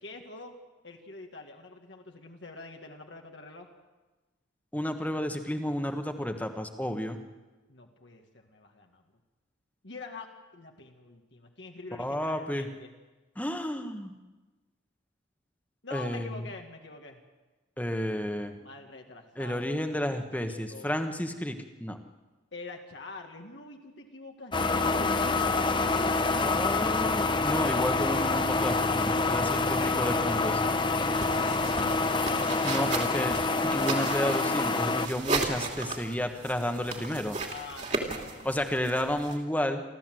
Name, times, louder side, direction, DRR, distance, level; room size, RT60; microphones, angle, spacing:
voice 1, 0.0-0.5 0.8-3.7 7.7-9.0 9.8-12.9 15.8-17.2 17.8-19.6 20.2-20.9 22.5-27.1 37.5-38.5, left 3 dB, 65° left, 2 dB, 1.8 m, -46 dB
voice 2, 4.7-7.2 12.0-12.7 13.4-14.2 15.9-16.5 17.8-18.5 19.4-22.0 26.4-30.6 32.6-33.4 33.6-37.4 38.4-39.8, equal, 10° left, 6 dB, 1.3 m, -31 dB
sound 1, 24.5-35.1, left 3 dB, 25° left, 0.8 m, -27 dB
sound 2, 31.1-39.3, right 3 dB, 35° right, 2.6 m, -35 dB
28.0 x 13.0 x 7.7 m, 1.2 s
head